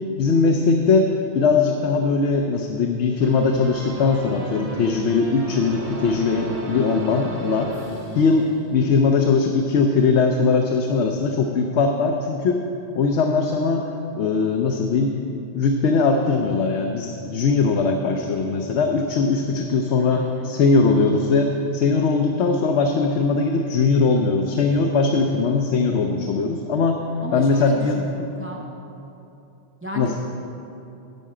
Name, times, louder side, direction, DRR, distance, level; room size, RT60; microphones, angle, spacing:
voice 1, 0.2-7.7 8.1-12.6 12.9-15.1 15.5-27.0 27.3-28.0 30.0-30.2, left 4 dB, 85° left, 3 dB, 0.9 m, -20 dB
sound 1, 3.2-8.9, right 2 dB, 35° right, 1.0 m, -34 dB
voice 2, 20.1-20.5 27.2-28.7 29.8-30.1, left 1 dB, 15° right, -1 dB, 0.6 m, -34 dB
11.0 x 4.8 x 7.5 m, 2.8 s
omnidirectional pair, 1.1 m